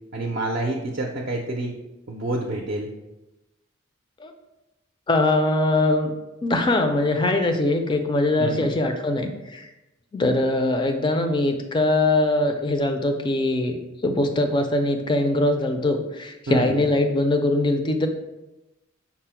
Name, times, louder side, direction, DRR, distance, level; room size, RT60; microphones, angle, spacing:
voice 1, 0.1-1.8 2.1-2.9 8.4-8.7 16.5-16.9, right 2 dB, 50° right, 1 dB, 0.4 m, -28 dB
voice 2, 5.1-6.1 6.4-9.7 10.1-18.1, left 2 dB, 25° left, 6 dB, 0.4 m, -22 dB
5.8 x 2.0 x 4.4 m, 1.0 s
head